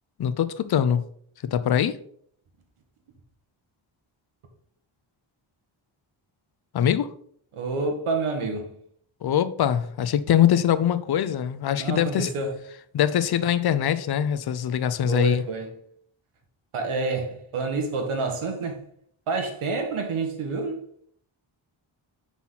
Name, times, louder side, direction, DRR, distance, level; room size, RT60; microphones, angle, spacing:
voice 1, 0.2-1.0 1.5-2.0 6.7-7.1 9.2-12.3 12.9-15.4, left 9 dB, 55° left, 0.5 m, -23 dB
voice 2, 7.5-8.7 11.8-12.5 15.1-15.7 16.7-18.8 19.3-20.8, right 3 dB, 90° right, 1.6 m, -28 dB
5.9 x 4.2 x 5.6 m
wide cardioid pair, 175°, 48 cm